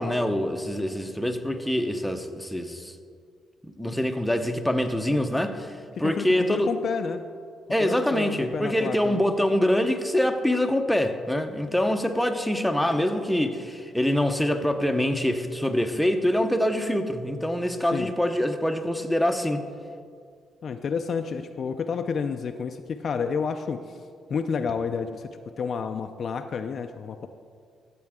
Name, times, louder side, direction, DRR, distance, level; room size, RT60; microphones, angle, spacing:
voice 1, 0.0-3.0 3.6-6.7 7.7-19.6, left 1 dB, 5° left, 6 dB, 0.7 m, -25 dB
voice 2, 6.0-7.3 7.8-9.2 17.9-18.1 20.6-24.0 24.3-27.3, left 6 dB, 50° left, 7 dB, 0.4 m, -30 dB
13.5 x 7.6 x 3.6 m, 2.2 s
cardioid pair, 90°, 0 cm